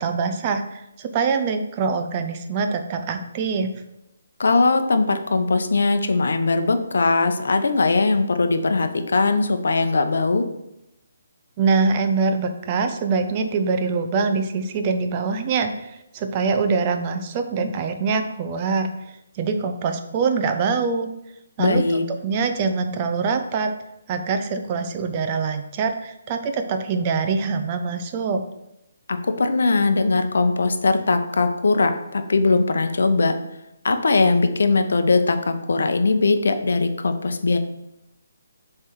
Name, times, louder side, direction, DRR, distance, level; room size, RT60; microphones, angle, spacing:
voice 1, 0.0-3.7 11.6-18.9 19.3-21.1 21.6-21.8 22.1-23.7 24.1-28.4, right 4 dB, 30° right, 6 dB, 0.6 m, -24 dB
voice 2, 4.4-10.5 21.6-22.0 29.1-33.3 33.8-37.6, left 3 dB, 65° left, 7 dB, 0.7 m, -20 dB
7.6 x 3.3 x 4.5 m, 0.86 s
figure-of-eight pair, 140°, 0 cm